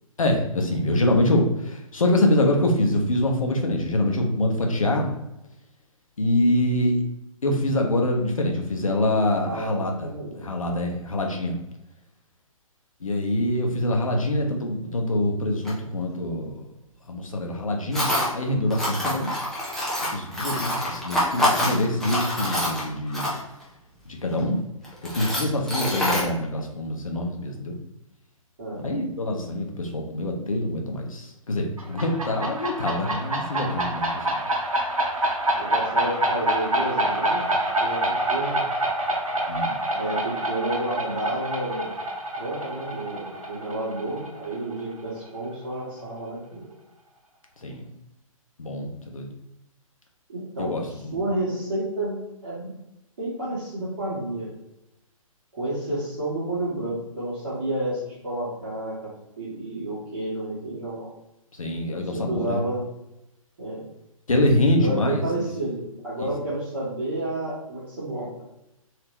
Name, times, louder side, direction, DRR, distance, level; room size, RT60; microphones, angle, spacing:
voice 1, 0.2-5.1 6.2-7.0 7.4-10.1 10.3-11.5 13.0-16.6 17.1-19.3 20.1-23.3 24.1-24.6 25.1-27.8 28.8-34.4 39.5-39.7 47.6-47.8 48.6-49.3 50.6-51.2 61.6-62.6 64.3-65.5, left 1 dB, 70° left, 2 dB, 0.8 m, -25 dB
voice 2, 9.4-10.4 28.6-29.0 35.6-38.6 39.9-41.9 42.4-46.7 50.3-52.2 52.4-52.7 53.2-54.5 55.5-59.1 59.4-61.1 61.9-62.8 63.6-63.8 64.8-68.3, right 1 dB, 40° right, -11 dB, 1.5 m, -30 dB
Tools, 15.7-15.8 17.9-18.3 18.7-23.6 24.3-24.4 24.8-26.2, left 1 dB, ahead, 0.4 m, -26 dB
sound 1, 31.8-45.2, right 1 dB, 70° right, 0.9 m, -27 dB
3.5 x 2.8 x 3.1 m, 0.91 s
figure-of-eight pair, 130°, 18 cm